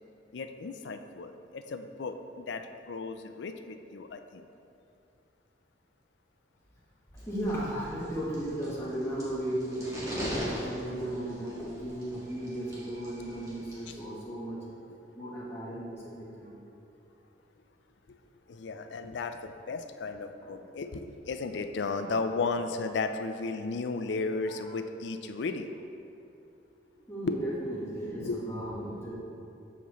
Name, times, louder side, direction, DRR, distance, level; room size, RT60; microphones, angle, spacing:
voice 1, 0.3-4.5 18.5-25.9 27.3-27.4 28.2-28.4, left 4 dB, 75° left, 8 dB, 0.4 m, -34 dB
sound 1, 7.2-14.0, equal, 20° right, 1.4 m, -41 dB
voice 2, 7.3-14.9 15.1-16.5 20.4-20.6 22.0-22.2 23.9-24.0 24.4-24.8 27.0-29.1, right 1 dB, 15° left, -7 dB, 1.3 m, -36 dB
7.2 x 6.8 x 3.0 m, 2.7 s
head